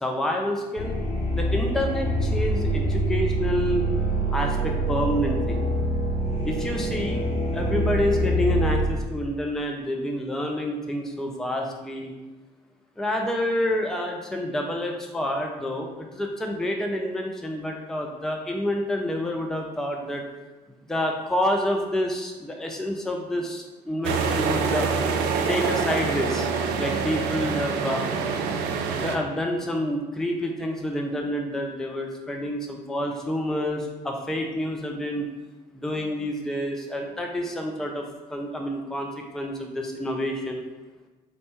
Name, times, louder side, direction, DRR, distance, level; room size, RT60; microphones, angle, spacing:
voice 1, 0.0-1.0 1.3-3.9 4.3-5.6 6.4-7.2 7.5-12.1 13.0-20.2 20.7-24.9 25.5-26.5 26.8-28.0 28.9-35.3 35.7-38.0 38.3-40.7, left 1 dB, ahead, 2 dB, 0.5 m, -28 dB
sound 1, 0.8-8.8, right 1 dB, 40° left, 1.0 m, -25 dB
sound 2, 24.0-29.2, right 5 dB, 50° right, 0.5 m, -26 dB
4.0 x 3.2 x 3.2 m, 1.2 s
figure-of-eight pair, 50°, 21 cm